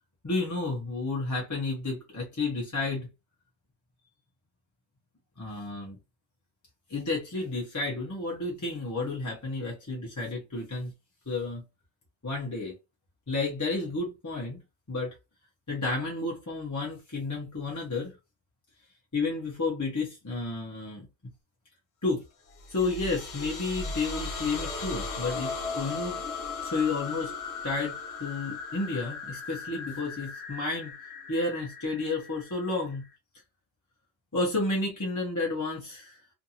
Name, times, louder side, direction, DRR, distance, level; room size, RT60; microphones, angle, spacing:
voice 1, 0.2-3.1 5.4-6.0 6.9-10.9 11.3-11.6 12.2-12.8 13.3-14.6 14.9-15.2 15.7-18.2 19.1-21.1 22.0-22.2 22.7-26.2 26.6-27.3 27.6-30.9 31.3-33.0 34.3-36.2, left 3 dB, 20° left, 0.6 m, -31 dB
sound 1, 22.5-33.1, left 4 dB, 65° left, 0.9 m, -37 dB
2.5 x 2.5 x 2.8 m
omnidirectional pair, 1.3 m